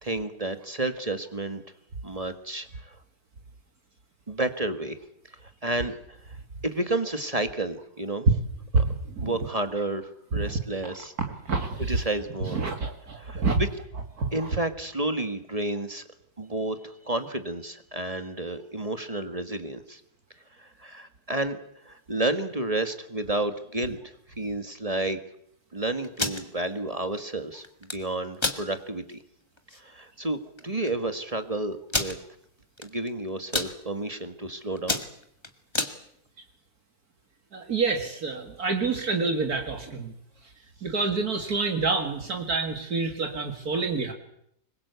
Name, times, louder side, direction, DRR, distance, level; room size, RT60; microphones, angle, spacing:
voice 1, 0.0-1.6 2.0-2.9 4.3-5.0 5.4-6.2 6.6-8.3 9.2-11.1 11.9-12.6 13.2-13.7 14.3-16.0 16.4-20.0 20.6-21.6 21.8-25.2 25.7-29.2 29.8-32.1 32.8-35.0, right 2 dB, 25° right, 9 dB, 1.7 m, -31 dB
voice 2, 8.7-9.3 11.5-12.0 12.5-13.6 14.2-14.5 37.5-40.1 40.8-44.1, right 4 dB, 65° right, 5 dB, 2.5 m, -27 dB
sound 1, 26.0-26.4 27.6-28.0 28.4-28.6 29.1-29.2 29.6-29.8 30.6-30.7 30.9-31.0 31.9-32.2 32.8-33.1 33.4-33.7 34.3-34.5 34.8-35.9, left 2 dB, 15° left, 1.8 m, -28 dB
25.0 x 22.0 x 8.2 m, 0.73 s
omnidirectional pair, 1.7 m